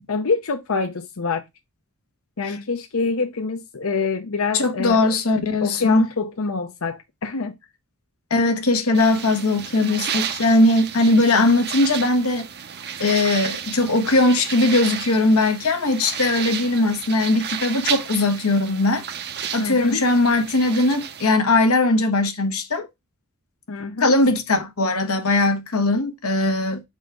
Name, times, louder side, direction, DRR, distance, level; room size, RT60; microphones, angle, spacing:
voice 1, 0.1-1.4 2.4-5.1 5.6-7.5 19.6-20.0 23.7-24.1, left 4 dB, 70° left, 0.7 m, -26 dB
voice 2, 4.5-6.1 8.3-12.4 13.0-19.0 19.5-22.9 24.0-26.8, left 2 dB, 85° left, 1.3 m, -19 dB
sound 1, 8.9-21.3, right 8 dB, 50° right, 0.7 m, -32 dB
4.6 x 4.1 x 5.0 m
head